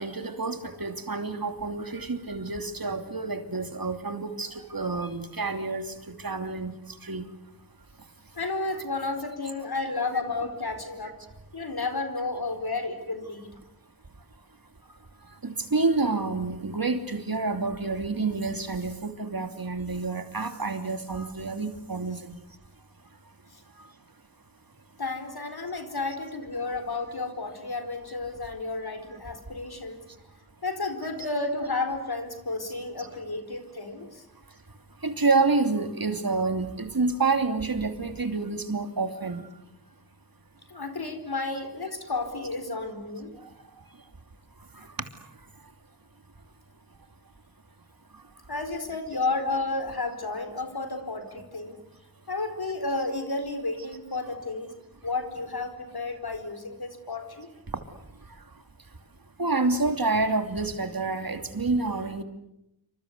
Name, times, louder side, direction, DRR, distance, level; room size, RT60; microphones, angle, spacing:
voice 1, 0.0-5.9 6.2-6.7 7.0-7.2 15.4-22.4 33.0-33.1 35.0-39.5 59.4-62.2, right 3 dB, 65° right, 7 dB, 2.9 m, -28 dB
voice 2, 8.3-11.2 11.5-13.5 23.5-23.6 25.0-30.0 30.6-34.3 40.7-43.3 48.5-51.8 52.3-54.7 55.0-57.5, left 3 dB, 80° left, 8 dB, 4.5 m, -32 dB
27.5 x 25.5 x 8.2 m, 0.85 s
wide cardioid pair, 60°, 37 cm